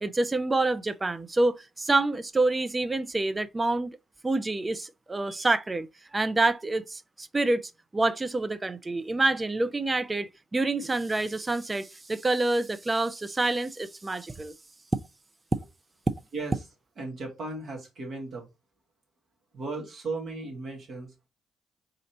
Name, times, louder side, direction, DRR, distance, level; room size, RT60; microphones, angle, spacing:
voice 1, 0.0-4.0 4.2-5.9 6.1-14.5, right 2 dB, 25° right, 0.6 m, -27 dB
voice 2, 17.0-18.5 19.5-21.3, right 3 dB, 50° right, 1.9 m, -36 dB
3.8 x 3.3 x 4.2 m
figure-of-eight pair, 45°, 0 cm